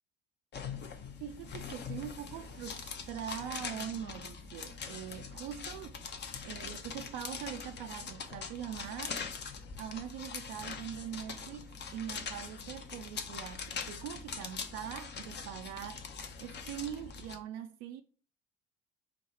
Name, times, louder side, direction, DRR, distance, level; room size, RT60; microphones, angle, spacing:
sound 1, 0.5-17.4, left 6 dB, 35° left, 0.8 m, -43 dB
voice 1, 1.2-6.0 6.4-9.2 9.8-16.1 16.4-18.0, right 10 dB, 60° right, 0.6 m, -42 dB
5.0 x 2.3 x 4.2 m
hypercardioid pair, 60°, 30 cm